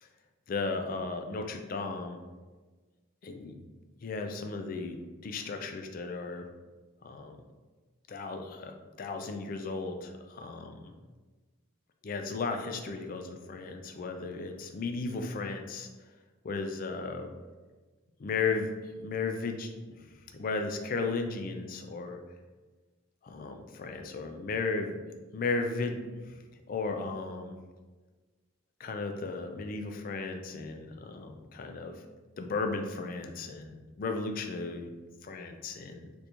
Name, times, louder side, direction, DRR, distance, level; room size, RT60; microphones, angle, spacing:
voice 1, 0.5-2.2 3.2-3.6 4.0-5.0 5.2-6.5 7.0-7.4 8.1-10.9 12.0-15.9 16.4-17.3 18.2-18.7 19.0-22.2 23.2-25.0 25.3-26.0 26.3-26.4 26.7-27.5 28.8-32.0 32.4-34.9 35.2-36.1, left 4 dB, 40° left, 5 dB, 0.3 m, -35 dB
3.4 x 2.5 x 2.9 m, 1.3 s
head